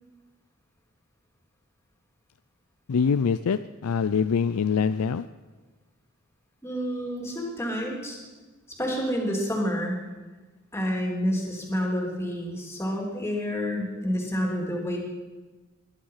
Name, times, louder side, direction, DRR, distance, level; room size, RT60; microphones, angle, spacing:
voice 1, 2.9-5.3, left 6 dB, 90° left, 12 dB, 0.4 m, -24 dB
voice 2, 6.6-8.2 8.8-10.0 10.7-15.0, equal, 10° left, 0 dB, 3.2 m, -29 dB
20.5 x 11.5 x 5.7 m, 1.3 s
head